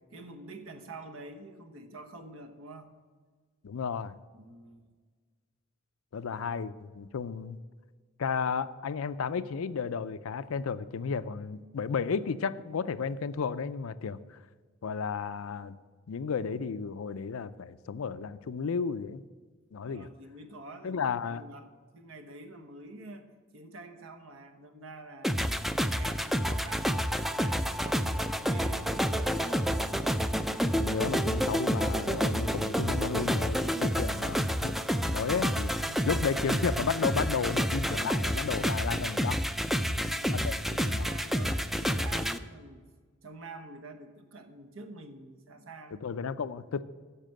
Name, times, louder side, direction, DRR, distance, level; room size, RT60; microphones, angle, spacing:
voice 1, 0.1-2.9 4.3-4.9 19.8-25.4 25.8-29.7 35.8-36.2 39.8-42.9 43.2-46.0, right 2 dB, 75° right, 7 dB, 1.2 m, -47 dB
voice 2, 3.6-4.2 6.1-7.6 8.2-14.2 14.8-15.8 16.1-19.2 19.7-20.1 20.8-21.4 30.8-34.8 35.1-35.7 36.1-39.4 40.3-40.5 40.8-41.1 46.0-46.8, left 5 dB, 90° left, 14 dB, 0.5 m, -33 dB
sound 1, 25.2-42.4, equal, ahead, 0.3 m, -29 dB
10.0 x 6.6 x 7.6 m, 1.5 s
head